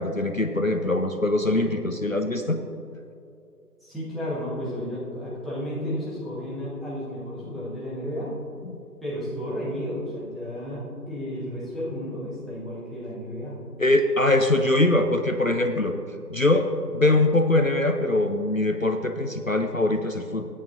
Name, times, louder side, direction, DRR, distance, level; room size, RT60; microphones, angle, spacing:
voice 1, 0.0-2.6 8.6-8.8 13.8-16.0 16.3-20.5, left 2 dB, 55° left, 6 dB, 0.6 m, -22 dB
voice 2, 3.8-8.3 9.0-13.6, equal, ahead, -10 dB, 0.9 m, -32 dB
16.5 x 8.5 x 2.5 m, 2.7 s
figure-of-eight pair, 170°, 49 cm